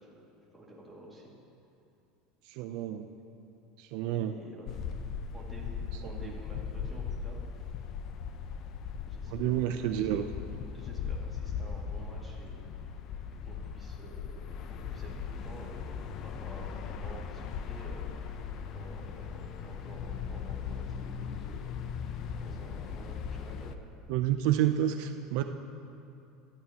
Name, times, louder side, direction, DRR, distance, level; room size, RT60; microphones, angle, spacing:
voice 1, 0.5-1.3 4.1-4.8 5.3-7.4 9.1-10.1 10.7-12.7 13.4-16.0 16.2-16.7 17.0-18.0 18.7-21.7 22.4-23.8, right 1 dB, 5° right, -6 dB, 2.1 m, -50 dB
voice 2, 2.4-3.1 3.8-4.3 6.0-6.3 9.3-10.3 24.1-25.4, right 11 dB, 60° right, 7 dB, 0.5 m, -29 dB
sound 1, 4.7-23.8, left 6 dB, 40° left, 0.6 m, -38 dB
19.0 x 12.5 x 2.9 m, 2.7 s
cardioid pair, 160°, 0 cm